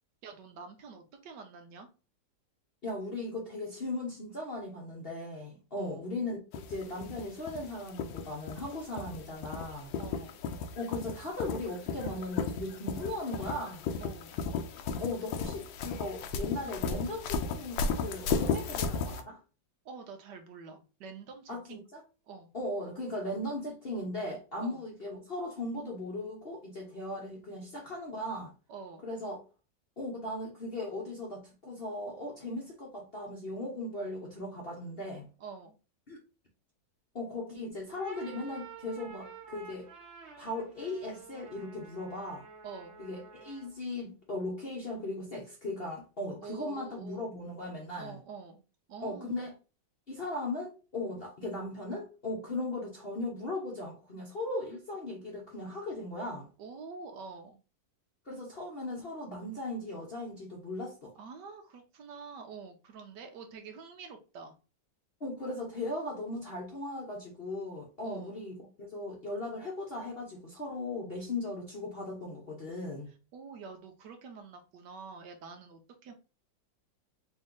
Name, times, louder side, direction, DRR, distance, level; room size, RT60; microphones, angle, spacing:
voice 1, 0.2-1.9 5.8-6.1 10.0-10.4 14.0-14.4 19.8-21.8 22.3-22.5 24.6-24.8 28.7-29.0 35.4-35.7 42.6-43.0 46.4-47.3 48.0-48.6 48.9-49.4 56.6-57.6 61.2-64.6 68.0-68.4 73.3-76.1, right 5 dB, 70° right, 1.3 m, -47 dB
voice 2, 2.8-9.9 10.7-13.8 15.0-19.4 21.5-22.0 22.5-28.5 29.0-29.4 30.0-35.3 36.1-36.2 37.1-39.9 40.4-42.5 43.0-48.2 49.0-49.5 50.1-56.5 58.3-61.1 65.2-73.1, left 2 dB, 45° left, 0.8 m, -38 dB
sound 1, 6.5-19.2, left 5 dB, 80° left, 1.3 m, -35 dB
sound 2, 37.8-43.8, right 5 dB, 45° right, 1.1 m, -49 dB
4.2 x 2.7 x 3.6 m
omnidirectional pair, 2.1 m